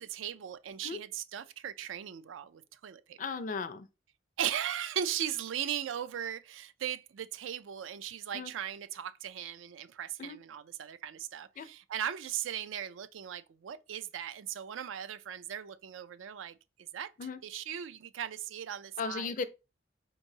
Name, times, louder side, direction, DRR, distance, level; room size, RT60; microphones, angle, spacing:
voice 1, 0.0-3.2 4.4-17.1 17.4-19.3, right 9 dB, 80° right, 0.4 m, -38 dB
voice 2, 3.2-3.9 8.3-8.5 10.2-10.4 11.6-11.7 17.2-17.4 19.0-19.4, left 4 dB, 40° left, 0.4 m, -36 dB
4.4 x 3.0 x 2.7 m
head